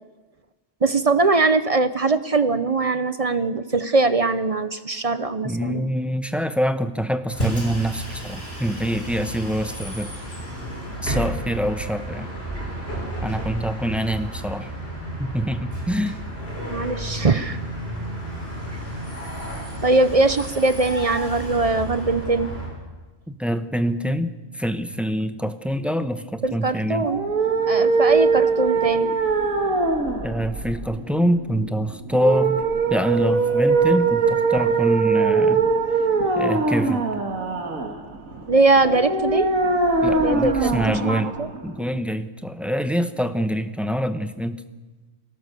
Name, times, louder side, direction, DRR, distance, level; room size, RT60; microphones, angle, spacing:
voice 1, 0.8-5.8 16.7-17.6 19.8-22.5 26.4-27.2 27.7-29.1 38.5-39.5 40.2-41.5, right 3 dB, 35° right, 12 dB, 0.6 m, -21 dB
voice 2, 5.4-10.1 11.0-12.3 13.2-14.7 15.2-16.2 23.3-27.1 30.2-32.6 32.9-35.7 36.4-37.0 40.0-41.3 41.6-44.6, equal, ahead, 9 dB, 0.8 m, -25 dB
Bus, 7.3-22.7, right 1 dB, 45° left, 6.5 m, -32 dB
sound 1, 27.0-42.0, right 4 dB, 75° right, 2.2 m, -22 dB
22.5 x 18.5 x 6.8 m, 1.2 s
omnidirectional pair, 1.4 m